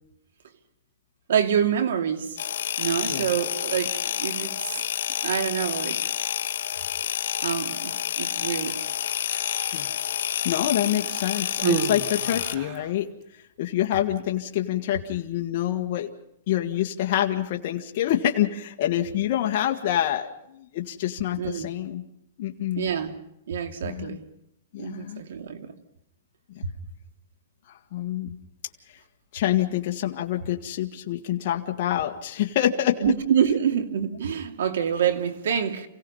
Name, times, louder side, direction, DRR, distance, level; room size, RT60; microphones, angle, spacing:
voice 1, 1.3-2.4 2.8-4.6 5.2-6.1 7.4-8.8 21.4-21.7 22.8-23.1 23.5-24.3 24.8-25.8 26.6-26.7 33.0-35.9, right 8 dB, 80° right, 2.5 m, -26 dB
sound 1, 2.4-12.5, left 10 dB, 70° left, 0.7 m, -29 dB
Human voice, 9.2-10.1 11.0-12.9 13.8-14.0, right 6 dB, 35° right, 1.6 m, -31 dB
voice 2, 10.4-13.1 13.6-16.1 16.5-22.0 22.4-22.9 23.8-24.2 24.7-25.2 26.5-26.6 27.7-28.4 29.3-33.0, left 12 dB, 45° left, 1.6 m, -26 dB
28.5 x 17.0 x 5.5 m
hypercardioid pair, 160°, 0 cm